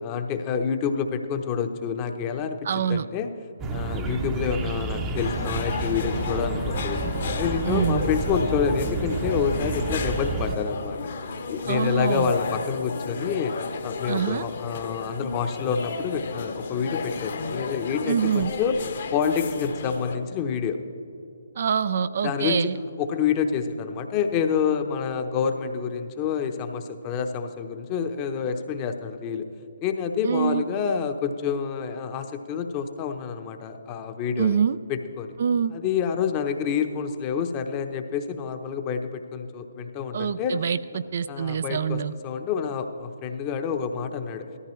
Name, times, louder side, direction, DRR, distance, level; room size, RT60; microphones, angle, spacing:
voice 1, 0.0-2.6 2.9-3.3 3.7-7.0 7.3-11.0 11.5-13.5 13.8-18.8 19.1-20.8 22.2-22.7 23.0-29.5 29.8-34.6 34.9-35.3 35.7-40.6 41.3-44.4, left 6 dB, 25° left, 7 dB, 0.9 m, -28 dB
voice 2, 2.6-3.1 7.6-8.1 11.7-12.3 14.1-14.5 18.1-18.5 21.6-22.8 30.2-30.7 34.4-34.8 35.4-35.7 40.1-42.1, right 7 dB, 50° right, 14 dB, 0.4 m, -25 dB
sound 1, 3.6-10.6, right 3 dB, 20° right, 0.7 m, -30 dB
sound 2, 5.2-20.1, left 4 dB, 55° left, 1.2 m, -33 dB
18.0 x 14.0 x 3.2 m, 2.6 s
figure-of-eight pair, 140°, 0 cm